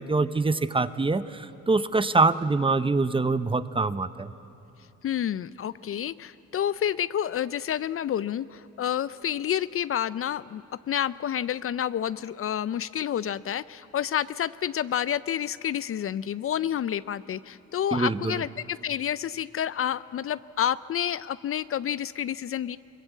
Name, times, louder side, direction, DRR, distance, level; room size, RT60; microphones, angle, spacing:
voice 1, 0.0-4.3 17.9-18.4, right 3 dB, 15° right, 14 dB, 0.7 m, -24 dB
voice 2, 5.0-22.8, left 10 dB, 45° left, 17 dB, 0.5 m, -29 dB
22.5 x 21.0 x 8.2 m, 3.0 s
cardioid pair, 90°, 30 cm